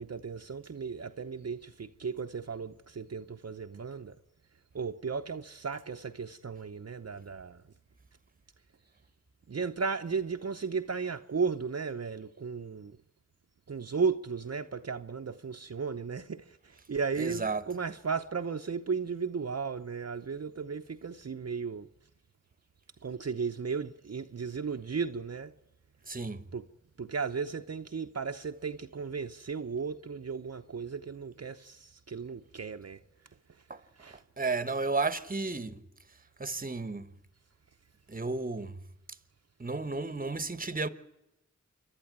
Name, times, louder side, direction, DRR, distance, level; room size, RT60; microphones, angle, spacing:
voice 1, 0.0-4.2 4.7-7.6 9.5-12.9 13.7-16.4 16.9-21.9 23.0-25.5 26.5-26.6 27.0-33.0 34.0-34.2, right 5 dB, 55° right, 0.8 m, -35 dB
voice 2, 17.2-17.7 26.1-26.4 33.7-33.8 34.4-35.8 36.4-37.1 38.1-38.8 39.6-40.9, right 3 dB, 30° right, 1.1 m, -33 dB
28.0 x 11.5 x 9.3 m
cardioid pair, 45°, 31 cm